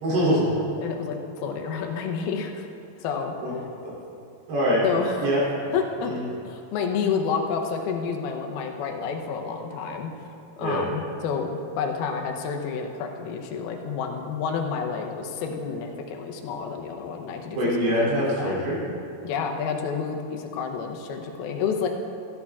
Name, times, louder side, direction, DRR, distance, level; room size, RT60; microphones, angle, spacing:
voice 1, 0.0-0.5 3.4-3.5 3.8-3.9 4.5-4.8 5.2-5.4 6.0-6.3 10.6-10.8 17.6-18.8, equal, 75° right, -6 dB, 5.2 m, -23 dB
voice 2, 0.8-2.7 3.0-3.3 4.8-5.3 5.7-10.1 10.6-17.6 18.0-18.6 19.2-21.9, left 6 dB, 75° left, 3 dB, 2.7 m, -29 dB
13.5 x 11.5 x 3.6 m, 2.7 s
omnidirectional pair, 4.7 m